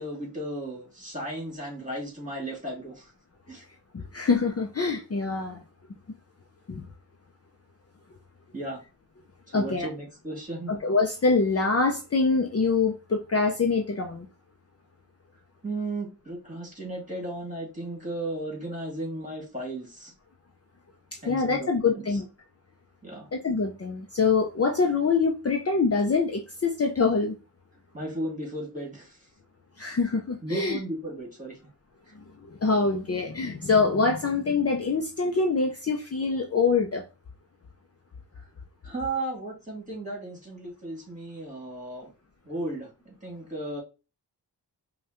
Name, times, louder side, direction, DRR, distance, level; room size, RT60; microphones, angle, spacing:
voice 1, 0.0-3.1 3.5-3.6 8.5-8.8 9.5-10.8 15.6-20.1 21.2-22.2 23.0-23.3 27.9-29.2 30.4-31.6 32.1-32.2 38.3-38.5 38.8-42.1 42.4-43.8, right 1 dB, 20° right, 2.3 m, -35 dB
voice 2, 3.9-5.6 6.7-6.8 9.5-9.9 10.7-14.3 21.3-22.3 23.3-27.3 29.8-30.8 32.2-32.3 32.6-37.0, left 4 dB, 35° left, 0.6 m, -25 dB
5.3 x 2.4 x 3.0 m
wide cardioid pair, 100°, 42 cm